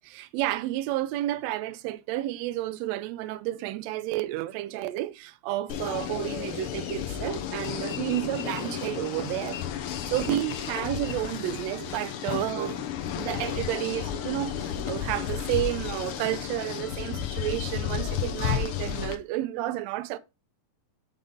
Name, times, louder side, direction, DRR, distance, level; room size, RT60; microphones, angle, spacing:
voice 1, 0.1-9.6 10.1-12.9 13.1-20.2, right 15 dB, 80° right, 1.6 m, -31 dB
sound 1, 5.7-19.2, left 9 dB, 80° left, 1.2 m, -32 dB
5.6 x 5.5 x 3.6 m
omnidirectional pair, 3.4 m